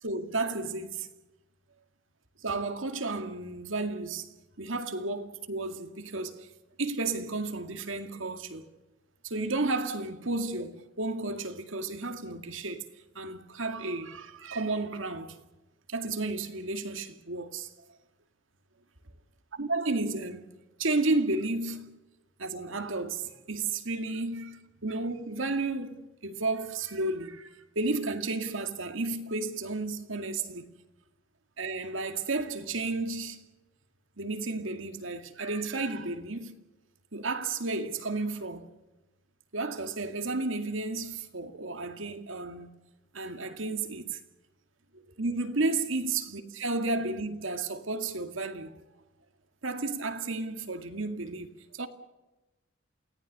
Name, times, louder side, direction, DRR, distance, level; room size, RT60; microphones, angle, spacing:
voice 1, 0.0-1.1 2.4-4.3 4.6-6.5 6.8-8.7 9.2-12.9 13.1-15.4 15.9-17.7 19.5-20.5 20.8-22.0 22.4-30.7 31.6-33.4 34.2-36.6 37.1-38.8 39.5-42.7 43.1-44.2 45.2-48.8 49.6-51.9, right 3 dB, 75° right, 2.2 m, -32 dB
29.0 x 18.0 x 6.7 m
head